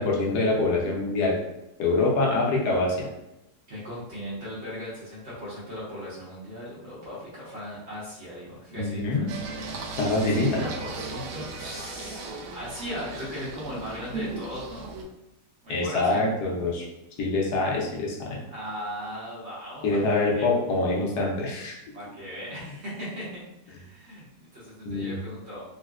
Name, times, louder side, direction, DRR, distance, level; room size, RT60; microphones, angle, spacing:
voice 1, 0.0-1.4 1.8-3.1 8.8-9.3 10.0-10.6 15.7-16.9 17.2-18.4 19.8-21.8 22.5-22.7 24.8-25.1, left 2 dB, 80° left, -2 dB, 1.2 m, -25 dB
voice 2, 3.7-9.2 10.6-14.9 15.6-16.2 18.5-20.5 21.9-25.6, equal, 50° right, -8 dB, 1.1 m, -38 dB
Singing, 9.3-15.0, right 3 dB, 70° right, 0.9 m, -37 dB
3.8 x 2.1 x 2.3 m, 0.89 s
omnidirectional pair, 1.7 m